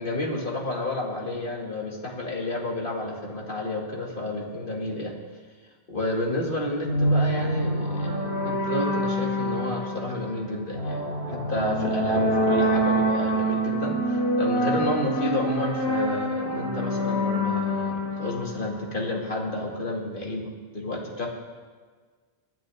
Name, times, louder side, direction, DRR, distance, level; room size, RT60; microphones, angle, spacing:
voice 1, 0.0-5.1 5.9-21.3, left 1 dB, 55° left, -1 dB, 2.3 m, -30 dB
sound 1, 6.8-19.3, right 1 dB, 90° left, 3.6 m, -26 dB
25.0 x 10.0 x 3.5 m, 1.5 s
omnidirectional pair, 1.1 m